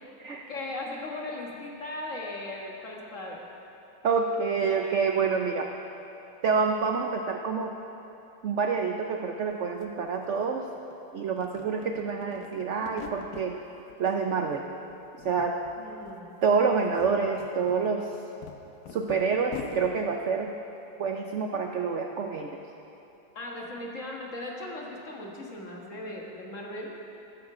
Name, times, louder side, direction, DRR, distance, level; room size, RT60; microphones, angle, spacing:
voice 1, 0.5-3.6 15.8-16.3 23.4-27.0, left 2 dB, 45° left, -1 dB, 1.9 m, -38 dB
voice 2, 4.0-5.7 6.4-7.7 8.4-10.7 11.1-13.6 14.0-14.7 15.2-15.6 16.4-18.1 18.9-20.5 21.0-22.6, right 5 dB, 65° right, 3 dB, 0.7 m, -27 dB
sound 1, 9.5-9.6 9.8-10.9 11.3-13.5 13.9-14.6 14.9-15.8 16.0-16.2 16.7-19.9, left 6 dB, 65° left, 1.2 m, -44 dB
13.5 x 13.0 x 4.9 m, 2.9 s
omnidirectional pair, 2.0 m